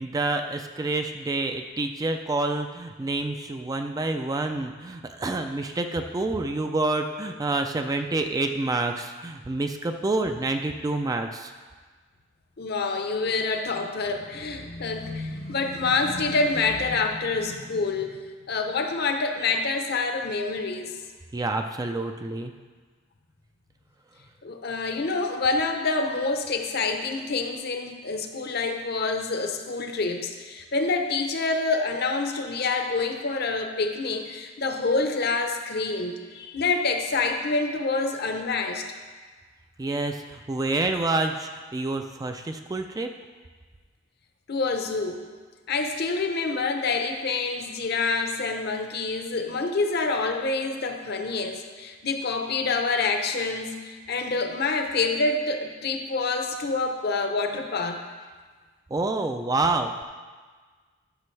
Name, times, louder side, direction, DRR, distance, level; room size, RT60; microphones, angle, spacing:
voice 1, 0.0-11.5 21.3-22.5 39.8-43.1 58.9-60.0, right 2 dB, 20° right, 6 dB, 0.3 m, -28 dB
voice 2, 12.6-21.0 24.4-38.8 44.5-45.2 45.7-58.0, left 3 dB, 50° left, 5 dB, 0.8 m, -27 dB
12.5 x 6.0 x 3.3 m, 1.5 s
head